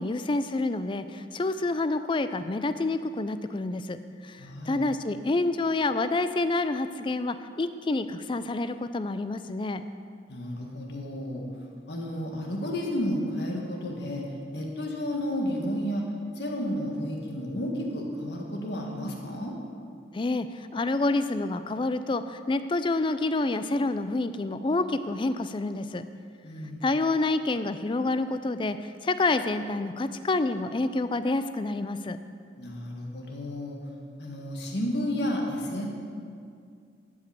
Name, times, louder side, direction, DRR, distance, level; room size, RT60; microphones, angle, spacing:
voice 1, 0.0-9.8 20.1-26.0 26.8-32.2, left 2 dB, 25° left, 11 dB, 0.4 m, -28 dB
voice 2, 4.4-4.8 10.3-11.5 11.9-14.3 14.5-16.0 16.4-19.6 26.4-26.8 32.6-33.8 34.2-35.9, equal, 65° left, -1 dB, 1.7 m, -32 dB
12.0 x 5.2 x 8.3 m, 2.3 s
head